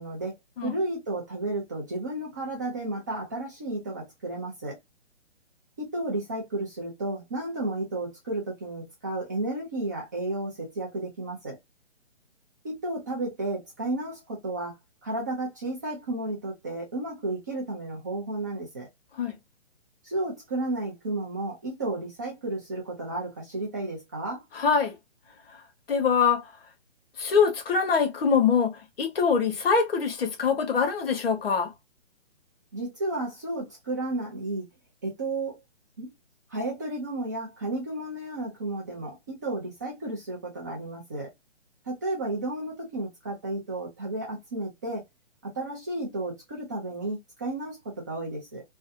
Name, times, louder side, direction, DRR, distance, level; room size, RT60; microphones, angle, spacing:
voice 1, 0.0-4.8 5.8-11.6 12.6-18.9 20.0-24.4 32.7-34.6 35.0-35.6 36.0-36.1 36.5-41.3 41.8-45.0 45.4-48.6, right 2 dB, 15° right, 0.5 m, -32 dB
voice 2, 24.5-25.0 25.9-26.5 27.2-31.7, left 6 dB, 55° left, 1.0 m, -24 dB
2.6 x 2.2 x 2.5 m
hypercardioid pair, 145°, 35 cm